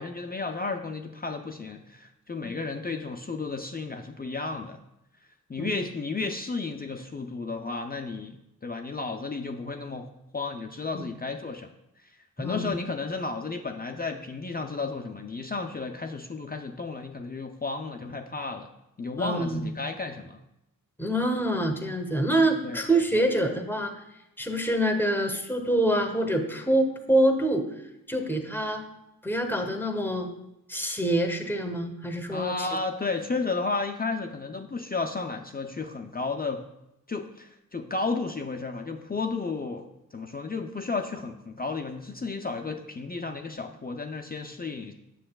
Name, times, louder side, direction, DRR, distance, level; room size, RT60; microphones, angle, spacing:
voice 1, 0.0-4.8 5.5-8.4 8.6-10.1 10.3-11.7 12.4-18.7 19.0-20.4 22.6-23.2 32.3-36.6 37.1-39.9 40.1-44.9, left 3 dB, 25° left, 4 dB, 0.5 m, -33 dB
voice 2, 12.4-12.8 19.2-19.7 21.0-23.9 24.4-27.6 28.1-28.8 29.2-30.3 30.7-32.5, right 1 dB, 5° left, 5 dB, 1.0 m, -26 dB
7.7 x 6.4 x 2.3 m, 0.86 s
cardioid pair, 45°, 35 cm